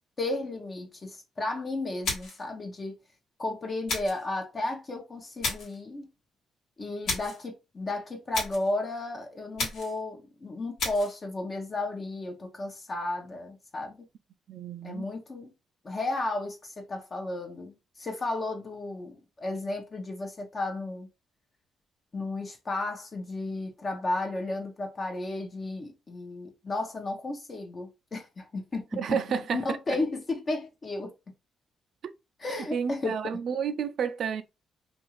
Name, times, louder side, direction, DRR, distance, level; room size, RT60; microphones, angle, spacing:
voice 1, 0.2-2.9 3.4-6.1 6.8-14.0 14.8-15.5 15.8-21.1 22.1-29.2 29.5-31.1 32.4-33.4, left 2 dB, 35° left, 0.8 m, -33 dB
sound 1, 2.0-2.5 3.9-4.2 5.4-5.8 7.0-7.4 8.3-8.7 9.6-10.0 10.8-11.2, left 3 dB, 75° left, 1.2 m, -32 dB
voice 2, 14.5-15.1 29.0-29.6 29.9-30.0 32.7-34.4, right 7 dB, 60° right, 0.4 m, -30 dB
2.5 x 2.3 x 3.0 m
cardioid pair, 90°, 0 cm